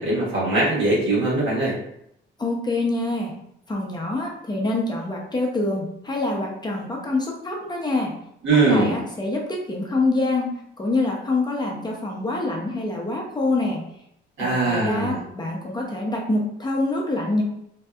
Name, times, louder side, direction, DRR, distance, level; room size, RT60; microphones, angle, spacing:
voice 1, 0.0-1.8 8.4-8.9 14.4-15.2, right 2 dB, 75° right, -6 dB, 1.2 m, -21 dB
voice 2, 2.4-3.3 3.7-8.1 8.7-13.8 14.4-17.4, left 2 dB, 20° left, -1 dB, 0.6 m, -25 dB
2.6 x 2.2 x 2.3 m, 0.74 s
cardioid pair, 90°, 20 cm